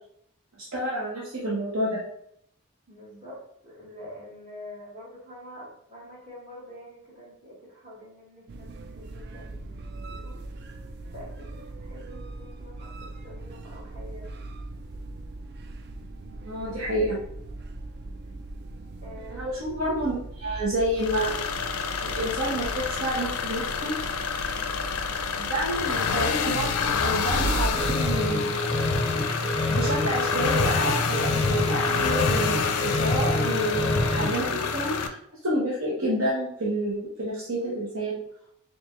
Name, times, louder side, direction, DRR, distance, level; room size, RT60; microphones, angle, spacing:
voice 1, 0.7-2.0 16.4-17.2 19.3-21.3 22.0-23.9 25.3-28.7 29.7-35.2 35.4-38.2, right 1 dB, 70° right, -6 dB, 1.0 m, -29 dB
voice 2, 2.9-10.4 11.1-14.3 19.0-19.5, left 1 dB, 30° right, -7 dB, 1.2 m, -46 dB
sound 1, 8.5-28.1, right 2 dB, 45° right, 0.3 m, -38 dB
sound 2, 21.0-35.1, left 6 dB, 90° left, 0.4 m, -28 dB
sound 3, 27.7-34.5, left 1 dB, 25° left, 0.5 m, -27 dB
4.5 x 2.6 x 3.0 m, 0.71 s
head